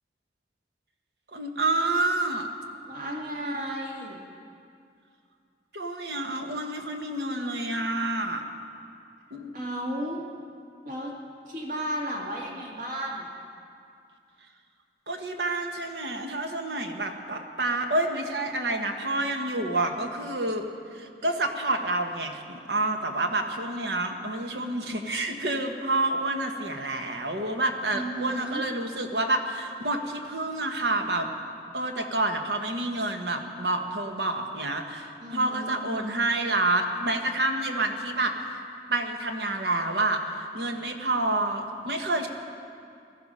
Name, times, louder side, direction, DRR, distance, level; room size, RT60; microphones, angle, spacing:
voice 1, 1.3-2.5 5.7-8.4 9.3-9.6 15.1-20.7 20.9-31.3 31.7-38.6 38.9-42.3, right 2 dB, 65° right, 4 dB, 1.4 m, -28 dB
voice 2, 2.9-4.2 9.5-10.2 10.8-11.1 11.5-13.3 27.9-28.6 35.2-35.8, equal, 45° right, -2 dB, 2.2 m, -33 dB
18.5 x 13.5 x 5.6 m, 2.4 s
head